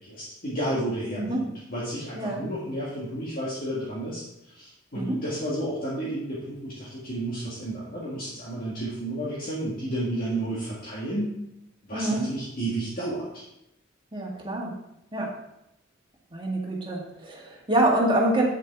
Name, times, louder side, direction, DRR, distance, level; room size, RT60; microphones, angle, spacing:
voice 1, 0.0-11.3 11.8-13.4, right 1 dB, 45° left, -7 dB, 1.9 m, -32 dB
voice 2, 11.9-12.3 14.1-14.8 15.1-15.3 16.3-18.5, right 1 dB, 25° right, -2 dB, 1.8 m, -26 dB
8.5 x 7.4 x 3.6 m, 0.84 s
head